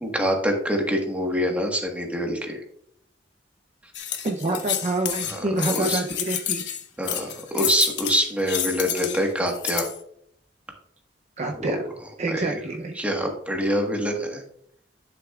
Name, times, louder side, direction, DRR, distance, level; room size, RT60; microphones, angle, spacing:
voice 1, 0.0-2.6 5.3-6.0 7.0-9.9 11.6-11.8 12.3-12.6 13.0-14.4, equal, 10° right, 1 dB, 1.4 m, -25 dB
sound 1, 3.9-10.0, left 10 dB, 80° left, 1.1 m, -29 dB
voice 2, 4.2-6.7 11.4-11.8 12.2-13.0, right 2 dB, 40° right, 2 dB, 0.6 m, -27 dB
11.0 x 6.7 x 2.4 m, 0.69 s
head